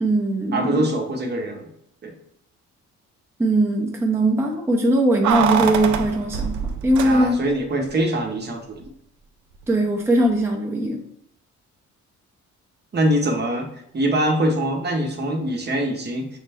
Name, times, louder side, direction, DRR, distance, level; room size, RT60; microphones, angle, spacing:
voice 1, 0.0-0.9 3.4-6.5 6.8-7.4 9.7-11.0, right 1 dB, 10° right, 0 dB, 0.6 m, -20 dB
voice 2, 0.5-1.7 2.0-2.1 7.0-8.9 12.9-13.7 13.9-16.3, right 1 dB, 35° right, 3 dB, 0.9 m, -23 dB
Keys jangling, 5.2-7.6 7.9-8.0, right 8 dB, 75° right, 0.5 m, -24 dB
6.3 x 2.2 x 3.4 m, 0.74 s
cardioid pair, 90°, 30 cm